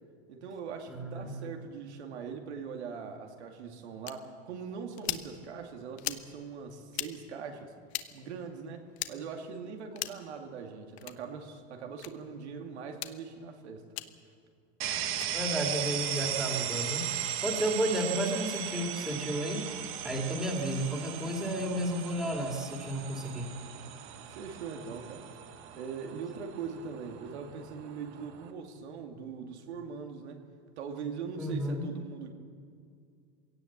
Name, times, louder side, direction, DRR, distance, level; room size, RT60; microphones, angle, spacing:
voice 1, 0.3-7.7 8.1-13.9 24.3-25.2 25.8-30.4 30.8-32.3, right 6 dB, 85° right, 4 dB, 2.5 m, -41 dB
voice 2, 0.9-1.3 15.3-19.6 20.0-23.5 31.4-31.9, right 1 dB, ahead, 1 dB, 2.4 m, -32 dB
sound 1, 4.1-4.2 5.0-5.3 6.0-6.3 6.9-7.1 7.9-8.1 9.0-9.1 9.9-10.2 11.0-11.2 12.0-12.1 12.9-13.1 14.0-14.1 15.1-15.3, left 15 dB, 70° left, 1.1 m, -36 dB
sound 2, 14.8-28.5, right 10 dB, 40° right, 1.5 m, -37 dB
22.0 x 17.5 x 7.4 m, 2.3 s
supercardioid pair, 145°, 33 cm